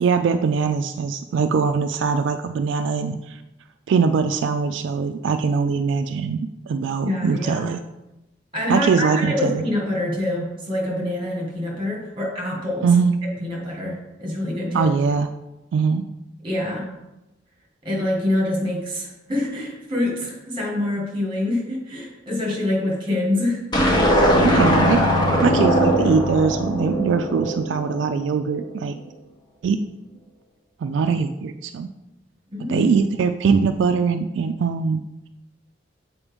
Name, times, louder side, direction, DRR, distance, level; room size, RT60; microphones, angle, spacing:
voice 1, 0.0-3.4 3.9-7.8 8.7-9.6 12.8-13.1 14.7-15.3 15.7-16.1 24.4-25.0 25.4-29.0 29.6-29.8 30.8-31.9 32.7-35.0, right 5 dB, 80° right, 8 dB, 0.3 m, -21 dB
voice 2, 7.0-7.7 8.5-12.9 13.4-14.9 16.4-16.9 17.8-23.6 32.5-32.9, left 1 dB, 25° right, -1 dB, 1.7 m, -25 dB
sound 1, 23.7-28.1, equal, 25° left, 1.0 m, -20 dB
7.2 x 4.3 x 3.5 m, 0.96 s
head